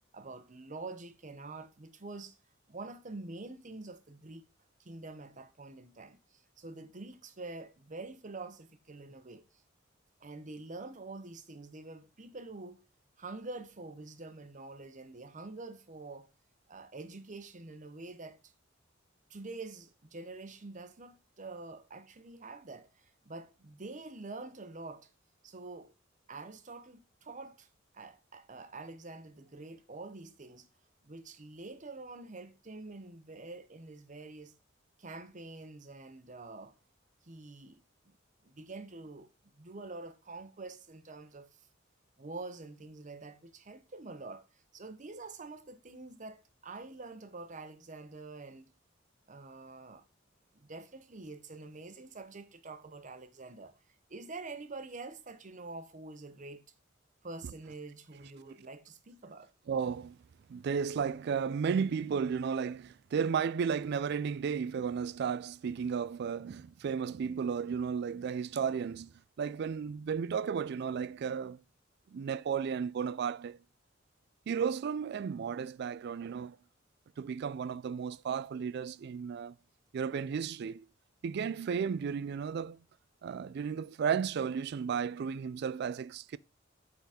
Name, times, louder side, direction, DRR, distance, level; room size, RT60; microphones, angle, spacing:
voice 1, 0.1-2.4 2.7-4.4 4.8-9.4 10.2-12.8 13.2-16.3 16.7-18.5 19.3-25.1 25.4-25.9 26.3-27.7 27.9-30.7 31.0-34.5 35.0-36.7 37.2-38.2 38.4-39.3 39.5-41.5 42.2-48.7 49.3-50.0 50.5-53.8 54.1-56.6 57.2-59.5, right 3 dB, 40° right, 0.9 m, -46 dB
voice 2, 59.7-60.2 60.5-71.6 72.1-73.6 74.5-76.6 77.2-79.5 79.9-80.9 81.2-82.8 83.2-86.4, right 6 dB, 55° right, 0.3 m, -34 dB
8.1 x 4.0 x 4.2 m
head